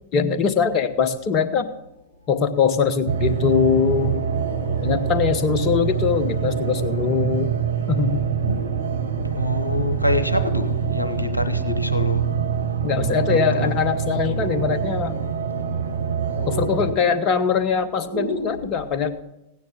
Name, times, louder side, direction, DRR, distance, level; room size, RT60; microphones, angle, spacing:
voice 1, 0.1-1.7 2.3-4.2 4.8-7.5 7.9-8.3 12.8-15.2 16.5-19.1, left 6 dB, 35° left, 1.1 m, -22 dB
sound 1, 2.0-2.1 2.4-18.6, right 1 dB, 90° right, 1.3 m, -37 dB
sound 2, 3.1-16.9, right 7 dB, 70° right, 0.9 m, -25 dB
voice 2, 8.1-8.7 9.2-12.3 13.1-13.8, left 1 dB, 85° left, 1.0 m, -26 dB
16.0 x 9.7 x 3.7 m
figure-of-eight pair, 90°, 0 cm